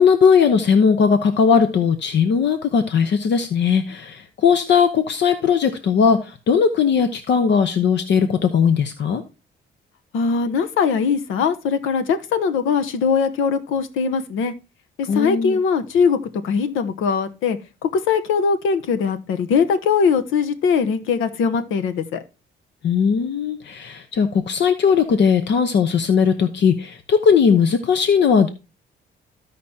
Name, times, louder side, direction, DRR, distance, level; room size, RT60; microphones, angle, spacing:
voice 1, 0.0-9.2 15.1-15.6 22.8-28.5, left 6 dB, 65° left, 9 dB, 0.9 m, -18 dB
voice 2, 10.1-14.5 15.0-16.2 16.4-22.2, left 6 dB, 90° left, 11 dB, 1.0 m, -21 dB
15.0 x 5.1 x 2.8 m, 0.28 s
cardioid pair, 90°, 20 cm